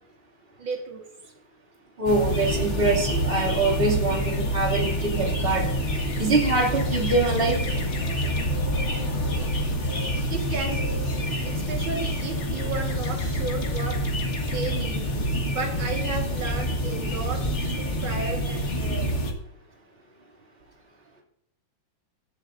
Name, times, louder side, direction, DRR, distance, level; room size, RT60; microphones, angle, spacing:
voice 1, 0.6-1.3 10.3-11.0 11.4-14.0 14.5-15.0 15.5-19.1, right 4 dB, 75° right, 1 dB, 2.5 m, -34 dB
voice 2, 2.0-5.8 6.2-7.6, right 3 dB, 30° right, -2 dB, 2.8 m, -24 dB
sound 1, 2.1-19.3, equal, 35° left, 1.8 m, -27 dB
17.0 x 11.0 x 2.6 m, 0.74 s
omnidirectional pair, 2.2 m